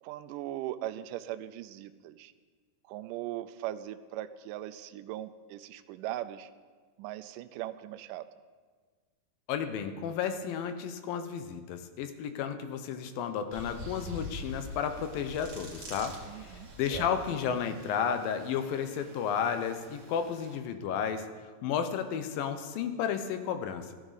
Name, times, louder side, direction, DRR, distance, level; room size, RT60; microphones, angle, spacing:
voice 1, 0.0-2.3 2.8-6.5 7.0-8.3 16.3-17.1, right 13 dB, 85° right, 9 dB, 1.9 m, -39 dB
voice 2, 9.5-21.3 21.6-23.9, left 7 dB, 75° left, 8 dB, 2.4 m, -33 dB
sound 1, 13.5-20.6, left 1 dB, 25° right, 1.8 m, -45 dB
14.0 x 13.0 x 4.0 m, 1.5 s
omnidirectional pair, 4.3 m